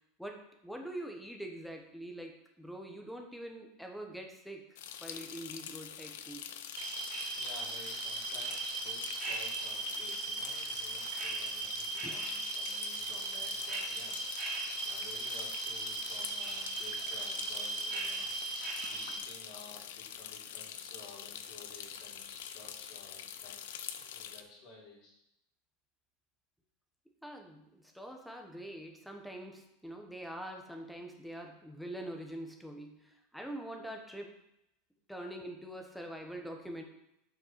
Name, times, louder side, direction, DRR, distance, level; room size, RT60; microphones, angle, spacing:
voice 1, 0.2-6.6 12.0-12.2 27.2-34.4 35.1-36.8, right 1 dB, ahead, 2 dB, 1.0 m, -44 dB
sound 1, 4.8-24.4, left 9 dB, 75° left, 0.7 m, -45 dB
sound 2, 6.7-19.2, right 3 dB, 25° right, 2.5 m, -38 dB
voice 2, 7.4-18.3 18.8-23.8 24.1-25.2, left 2 dB, 45° left, -1 dB, 2.4 m, -53 dB
7.3 x 5.6 x 5.8 m, 0.84 s
supercardioid pair, 160°, 0 cm